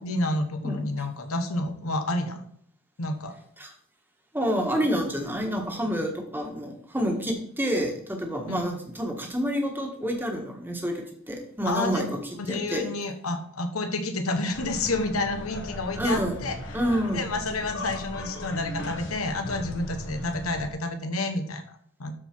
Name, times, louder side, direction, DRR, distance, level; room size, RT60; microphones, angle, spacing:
voice 1, 0.0-2.4 3.0-3.3 6.0-6.1 11.6-12.1 12.4-16.6 17.1-22.1, left 2 dB, 85° left, 7 dB, 1.2 m, -29 dB
voice 2, 4.3-12.1 12.5-12.9 16.0-16.3 16.7-17.3, equal, 10° right, 2 dB, 1.4 m, -28 dB
sound 1, 14.5-20.7, left 1 dB, 55° left, 1.4 m, -38 dB
12.5 x 4.7 x 4.5 m, 0.63 s
head